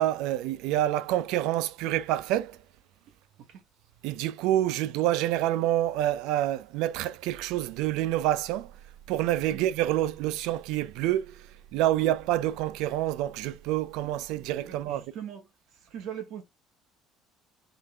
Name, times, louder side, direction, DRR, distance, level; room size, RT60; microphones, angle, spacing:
voice 1, 0.0-2.6 4.0-8.7 9.1-15.0, right 13 dB, 80° right, 0.4 m, -27 dB
voice 2, 14.0-15.4 15.9-16.4, right 9 dB, 60° right, 1.1 m, -41 dB
3.8 x 3.3 x 3.4 m
cardioid pair, 135°, 0 cm